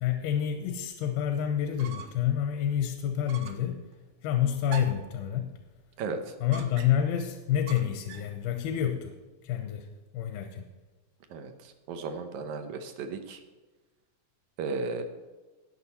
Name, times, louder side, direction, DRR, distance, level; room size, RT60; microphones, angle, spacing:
voice 1, 0.0-3.8 4.2-5.5 6.4-9.1 9.4-9.9 10.1-10.6, left 10 dB, 85° left, 6 dB, 2.8 m, -28 dB
sound 1, 1.6-2.3 2.7-2.8 3.3-3.7 4.7-5.1 6.5-7.2 7.7-8.4, right 7 dB, 90° right, 2.9 m, -44 dB
voice 2, 11.9-13.4 14.6-15.0, right 4 dB, 70° right, 7 dB, 2.0 m, -34 dB
19.0 x 6.5 x 4.2 m, 1.2 s
omnidirectional pair, 4.3 m